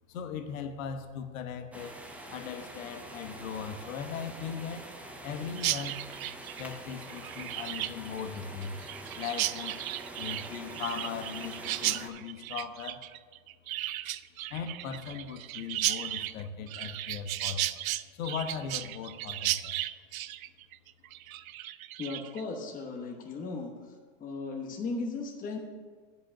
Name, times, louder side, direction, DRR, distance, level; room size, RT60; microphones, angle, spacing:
voice 1, 0.1-2.0 2.3-4.9 5.2-6.0 6.6-8.8 9.2-9.8 10.1-13.0 14.5-17.7 18.1-19.8, left 7 dB, 75° left, 8 dB, 1.1 m, -38 dB
sound 1, 1.7-12.1, right 2 dB, 5° right, 0.5 m, -45 dB
Chirp tweet, 5.6-22.4, right 14 dB, 85° right, 0.5 m, -35 dB
voice 2, 22.0-23.7 24.2-25.6, left 3 dB, 20° left, 2 dB, 1.1 m, -36 dB
8.9 x 5.5 x 7.1 m, 1.5 s
supercardioid pair, 130°, 40 cm